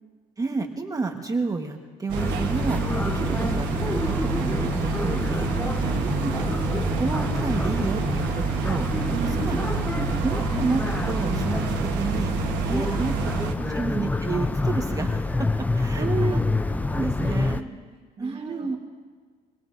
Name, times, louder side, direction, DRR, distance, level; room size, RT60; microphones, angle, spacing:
voice 1, 0.4-8.9 9.2-9.6 10.2-12.3 12.7-13.3 13.7-16.4 16.9-17.5 18.2-18.8, right 4 dB, 20° right, 3 dB, 1.4 m, -31 dB
sound 1, 2.1-13.5, right 7 dB, 90° right, 1.3 m, -28 dB
sound 2, 2.2-17.6, left 2 dB, 10° left, 0.4 m, -27 dB
voice 2, 5.8-6.1 9.1-9.6 12.8-13.9 15.9-16.4 17.2-17.7 18.2-18.8, right 5 dB, 35° right, 2 dB, 2.1 m, -33 dB
25.0 x 20.0 x 2.6 m, 1.5 s
cardioid pair, 110°, 17 cm